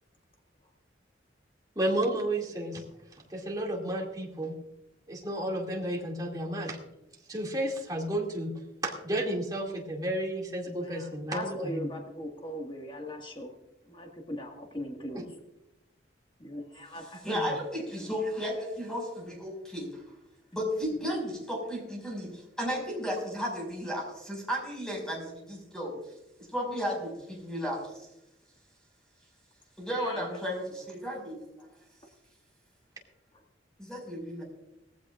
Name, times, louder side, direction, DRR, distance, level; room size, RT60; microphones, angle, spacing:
voice 1, 1.8-2.8 3.3-4.5 5.1-6.8 7.3-8.5 8.8-11.8 17.3-17.4, right 1 dB, 20° right, -1 dB, 2.3 m, -32 dB
voice 2, 10.8-13.5 13.9-15.4 16.4-17.4 30.0-30.4 33.3-33.4, left 1 dB, 25° left, 1 dB, 1.7 m, -40 dB
voice 3, 17.2-20.0 20.5-25.9 26.5-28.1 29.8-31.4 33.8-34.4, equal, 5° left, -1 dB, 5.3 m, -34 dB
19.0 x 15.0 x 2.4 m, 0.91 s
head